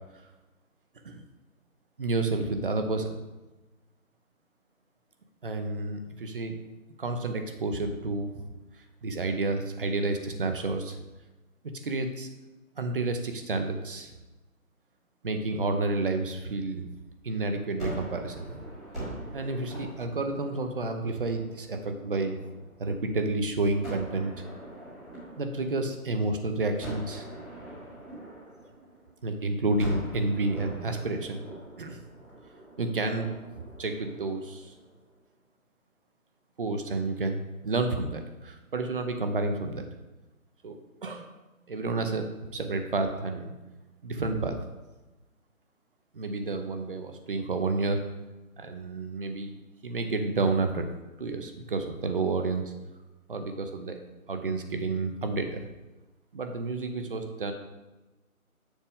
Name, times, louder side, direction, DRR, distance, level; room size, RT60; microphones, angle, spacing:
voice 1, 2.0-3.1 5.4-6.6 7.0-8.5 9.0-11.0 11.8-12.3 12.8-14.1 15.2-16.9 17.2-18.6 19.3-22.4 22.8-24.3 25.4-27.3 29.2-31.4 31.8-32.0 32.8-33.4 33.8-34.7 36.6-37.4 37.6-39.8 40.6-41.2 41.7-43.5 44.0-44.6 46.1-48.1 48.6-49.5 49.8-50.9 51.2-52.6 53.3-54.0 54.3-55.6 56.3-57.5, right 3 dB, 40° right, 6 dB, 0.8 m, -30 dB
Gunshot gunfire, 17.8-22.9 23.8-26.2 26.8-29.3 29.8-35.0, right 1 dB, ahead, 0.8 m, -42 dB
7.2 x 6.6 x 3.7 m, 1.1 s
figure-of-eight pair, 155°, 44 cm